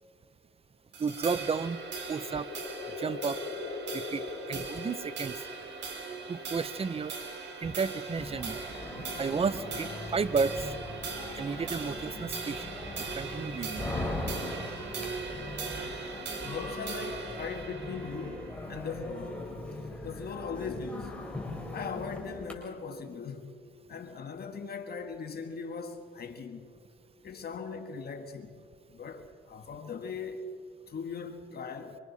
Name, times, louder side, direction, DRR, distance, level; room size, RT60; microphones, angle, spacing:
sound 1, 0.9-19.5, right 4 dB, 65° right, 3.7 m, -40 dB
voice 1, 1.0-1.8 2.1-2.5 3.0-3.4 3.9-4.2 4.5-5.4 6.3-7.1 7.6-8.6 9.2-10.6 11.3-12.6 13.1-13.9, right 5 dB, 30° right, 0.7 m, -32 dB
sound 2, 1.6-5.7, left 4 dB, 80° left, 3.8 m, -41 dB
sound 3, 8.2-22.5, left 2 dB, 5° left, 4.5 m, -40 dB
voice 2, 16.4-19.5 20.0-21.2 21.7-23.6 23.9-26.7 27.2-28.6 28.9-30.5 30.9-32.0, left 5 dB, 50° left, 1.7 m, -39 dB
25.5 x 25.0 x 4.2 m
cardioid pair, 90°, 20 cm